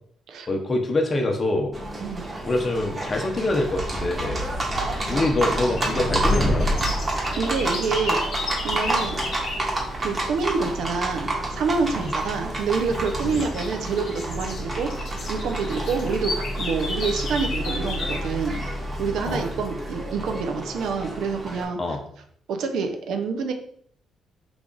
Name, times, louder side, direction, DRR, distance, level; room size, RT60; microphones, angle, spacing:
voice 1, 0.5-1.7 2.4-4.4 5.1-6.7 11.9-12.1 13.2-13.4 19.2-19.4 21.8-22.0, left 2 dB, 35° left, 3 dB, 0.6 m, -25 dB
Livestock farm animals working animals, 1.7-21.6, right 1 dB, 30° right, 1.1 m, -30 dB
sound 1, 3.7-7.1, equal, 5° right, 0.8 m, -27 dB
sound 2, 5.0-9.7 11.9-12.3 12.8-18.3, left 2 dB, 65° left, 0.9 m, -34 dB
voice 2, 7.3-8.2 8.6-9.2 10.0-18.6 19.0-21.8 22.5-23.5, right 5 dB, 75° right, 5 dB, 0.5 m, -27 dB
3.3 x 2.4 x 3.8 m, 0.63 s
cardioid pair, 90°, 0 cm